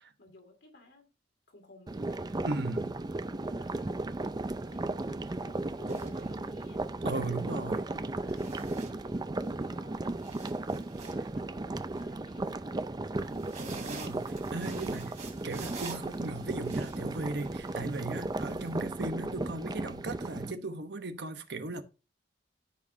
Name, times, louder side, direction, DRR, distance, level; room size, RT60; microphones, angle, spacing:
voice 1, 0.2-1.1 1.5-4.2 4.7-14.0, left 1 dB, 70° left, 2.4 m, -57 dB
sound 1, 1.9-20.5, right 2 dB, 25° right, 0.4 m, -35 dB
voice 2, 2.4-2.9 7.0-7.8 13.5-15.2 15.4-21.8, right 2 dB, 65° right, 1.1 m, -37 dB
sound 2, 4.7-4.8 5.6-6.8 8.3-9.5 9.9-12.0 13.1-18.8, right 3 dB, 40° right, 3.1 m, -47 dB
13.5 x 5.1 x 2.7 m
head